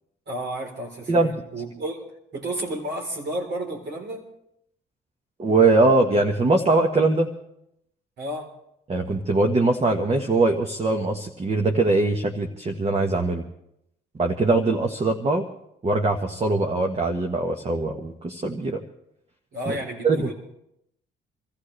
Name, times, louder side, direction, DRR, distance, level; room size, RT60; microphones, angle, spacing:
voice 1, 0.3-2.1 2.3-4.2 8.2-8.5 19.5-20.3, right 1 dB, 60° right, -1 dB, 4.0 m, -32 dB
voice 2, 5.4-7.3 8.9-13.4 14.2-15.4 15.8-18.8 19.7-19.8 20.0-20.3, right 3 dB, 30° right, 3 dB, 1.5 m, -22 dB
27.0 x 14.5 x 3.4 m, 0.79 s
cardioid pair, 90°, 20 cm